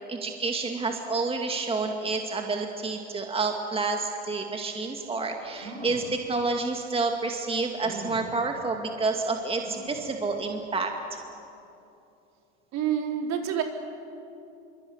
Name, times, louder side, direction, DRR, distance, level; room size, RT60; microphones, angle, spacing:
voice 1, 0.1-10.9, right 3 dB, 15° right, 3 dB, 2.3 m, -29 dB
sound 1, 5.1-5.2 5.6-6.1 6.9-7.0 7.8-8.3 9.6-10.1 10.6-10.7 11.0-11.1, right 2 dB, 80° right, 7.1 m, -41 dB
voice 2, 12.7-13.6, right 9 dB, 50° right, 3 dB, 4.1 m, -27 dB
25.0 x 24.0 x 9.7 m, 2.8 s
hypercardioid pair, 100°, 35 cm